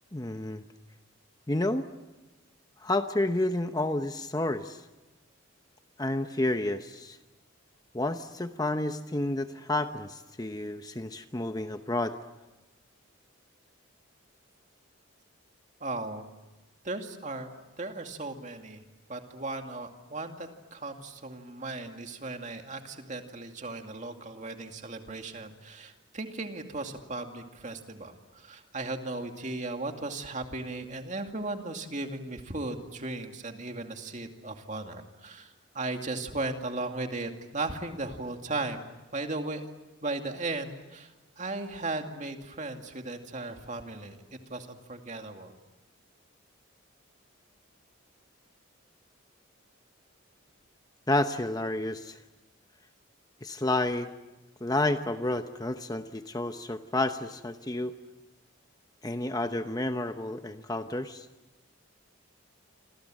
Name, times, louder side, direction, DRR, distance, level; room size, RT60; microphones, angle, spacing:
voice 1, 0.1-0.6 1.5-1.9 2.8-4.8 6.0-7.2 7.9-12.2 51.1-52.2 53.4-54.1 54.6-57.9 59.0-61.3, left 2 dB, 20° left, 8 dB, 0.8 m, -30 dB
voice 2, 15.8-16.3 16.8-17.5 17.8-18.8 19.1-39.6 40.0-45.5, right 2 dB, 35° right, 5 dB, 2.4 m, -36 dB
29.0 x 26.0 x 7.7 m, 1.1 s
head